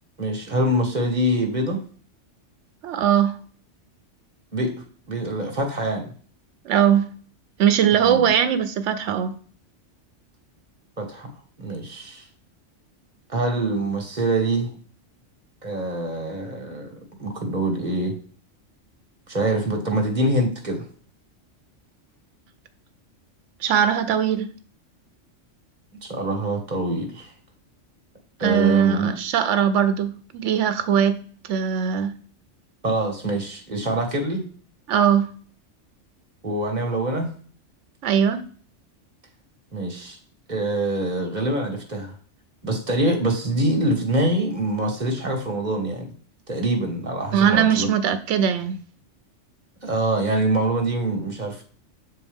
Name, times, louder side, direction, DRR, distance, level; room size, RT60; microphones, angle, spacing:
voice 1, 0.2-1.8 4.5-4.7 5.1-6.1 7.9-8.2 11.0-11.3 11.6-12.2 13.3-14.7 15.6-16.9 17.2-18.1 19.3-20.8 26.0-27.3 28.4-29.1 32.8-34.4 36.4-37.3 39.7-40.2 40.5-42.1 42.6-46.1 46.5-47.9 49.8-51.6, right 1 dB, 35° right, 1.6 m, -24 dB
voice 2, 2.8-3.4 6.6-7.0 7.6-9.3 23.6-24.5 28.4-31.1 31.5-32.1 34.9-35.3 38.0-38.4 47.3-48.7, right 9 dB, 75° right, 1.0 m, -20 dB
7.0 x 4.5 x 3.5 m
omnidirectional pair, 1.3 m